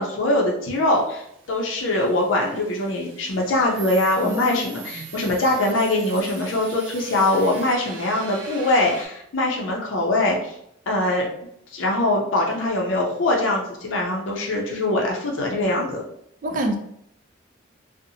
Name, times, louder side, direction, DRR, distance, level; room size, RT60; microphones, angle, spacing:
voice 1, 0.0-10.6 10.9-11.3 11.7-16.0, left 1 dB, 90° left, -1 dB, 0.5 m, -22 dB
sound 1, 0.7-9.1, right 5 dB, 85° right, 0.6 m, -41 dB
voice 2, 4.2-4.6 5.0-5.1 16.4-16.8, right 1 dB, 45° right, 4 dB, 0.3 m, -26 dB
2.7 x 2.0 x 2.6 m, 0.73 s
head